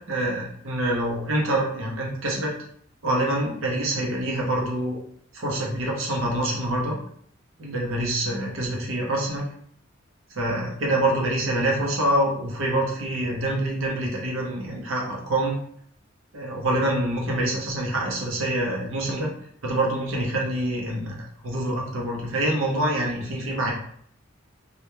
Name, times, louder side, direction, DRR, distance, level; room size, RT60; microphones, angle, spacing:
voice 1, 0.1-2.5 3.0-5.0 5.3-7.0 7.6-9.4 10.3-15.6 16.3-19.3 19.6-23.7, right 1 dB, 90° right, -2 dB, 0.8 m, -26 dB
2.4 x 2.1 x 3.0 m, 0.63 s
head